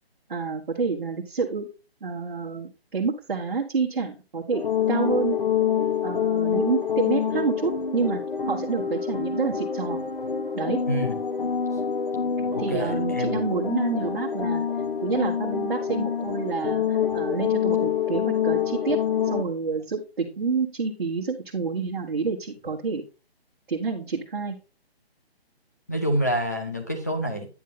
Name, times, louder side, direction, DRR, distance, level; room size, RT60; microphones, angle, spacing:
voice 1, 0.3-1.7 2.0-4.6 4.9-5.4 6.0-10.0 10.5-10.8 12.6-14.6 15.0-19.0 19.2-23.0 23.7-24.6, right 5 dB, 50° right, -2 dB, 1.4 m, -28 dB
sound 1, 4.5-19.4, left 7 dB, 55° left, 1.3 m, -26 dB
voice 2, 10.9-11.2 12.4-13.4 25.9-27.5, equal, 15° left, 3 dB, 0.6 m, -27 dB
9.3 x 5.3 x 3.8 m, 0.32 s
hypercardioid pair, 175°, 32 cm